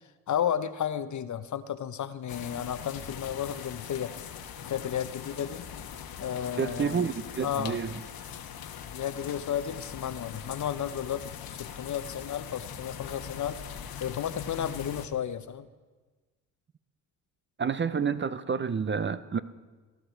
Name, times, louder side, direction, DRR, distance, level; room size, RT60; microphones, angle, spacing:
voice 1, 0.3-4.1 4.6-5.7 6.2-7.1 7.4-7.8 8.9-13.6 14.0-15.7, left 9 dB, 45° left, 0.8 m, -33 dB
sound 1, 2.3-15.1, left 8 dB, 65° left, 1.3 m, -41 dB
voice 2, 6.6-7.9 17.6-19.4, right 6 dB, 30° right, 0.7 m, -29 dB
19.5 x 11.0 x 4.5 m
supercardioid pair, 60°, 40 cm